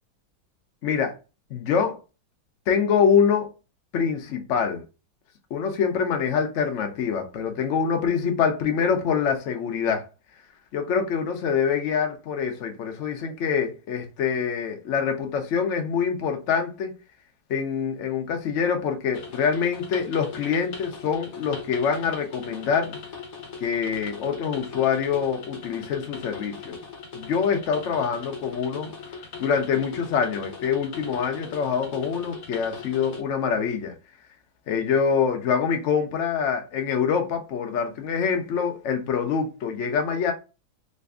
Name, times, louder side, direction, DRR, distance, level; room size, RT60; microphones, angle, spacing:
voice 1, 0.8-1.1 1.5-2.0 2.7-3.5 3.9-4.8 5.5-10.0 10.7-16.9 17.5-23.0 23.6-26.8 27.1-28.9 29.4-33.9 34.7-40.3, left 6 dB, 75° left, 0.6 m, -25 dB
sound 1, 19.1-33.2, left 5 dB, 55° left, 1.0 m, -40 dB
3.2 x 2.6 x 3.4 m
omnidirectional pair, 2.2 m